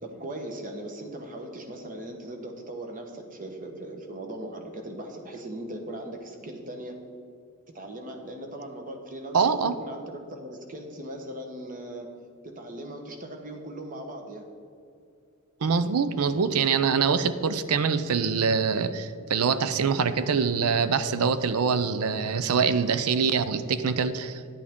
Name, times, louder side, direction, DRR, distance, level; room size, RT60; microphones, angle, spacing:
voice 1, 0.0-7.0 7.7-12.1 12.4-14.5, right 1 dB, 40° right, 4 dB, 1.1 m, -39 dB
voice 2, 9.3-9.7 15.6-24.4, right 5 dB, 80° right, 13 dB, 0.5 m, -24 dB
10.0 x 8.5 x 3.6 m, 2.4 s
head